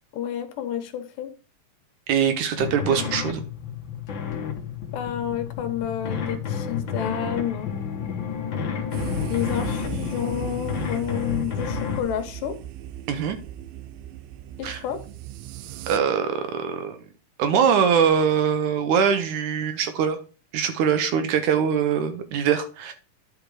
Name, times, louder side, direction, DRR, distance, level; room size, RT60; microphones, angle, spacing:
voice 1, 0.1-1.3 4.9-7.7 9.3-12.6 14.6-15.0, left 9 dB, 75° left, 2.6 m, -30 dB
voice 2, 2.1-3.4 13.1-13.4 14.6-14.8 15.9-17.0 17.4-20.2 20.5-22.9, right 7 dB, 70° right, 2.1 m, -22 dB
sound 1, 2.6-12.0, left 7 dB, 60° left, 1.3 m, -30 dB
sound 2, 8.9-16.0, right 13 dB, 90° right, 2.4 m, -37 dB
10.5 x 5.1 x 4.7 m
omnidirectional pair, 4.0 m